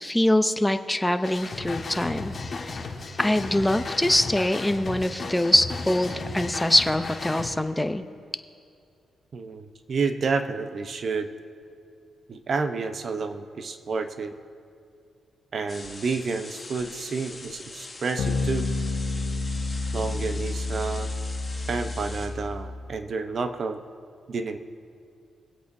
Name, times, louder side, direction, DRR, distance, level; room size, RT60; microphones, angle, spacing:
voice 1, 0.0-2.3 2.6-2.7 3.2-8.0, left 1 dB, 10° left, 9 dB, 0.6 m, -23 dB
sound 1, 1.2-7.5, left 3 dB, 45° left, 1.6 m, -35 dB
voice 2, 9.3-11.3 12.3-14.4 15.5-18.7 19.9-21.1 21.7-23.8 24.3-24.6, right 4 dB, 55° right, 8 dB, 0.8 m, -30 dB
sound 2, 15.7-22.3, left 3 dB, 25° left, 2.3 m, -42 dB
sound 3, 18.2-23.0, left 3 dB, 85° left, 0.8 m, -30 dB
22.0 x 8.2 x 2.7 m, 2.5 s
cardioid pair, 70°, 0 cm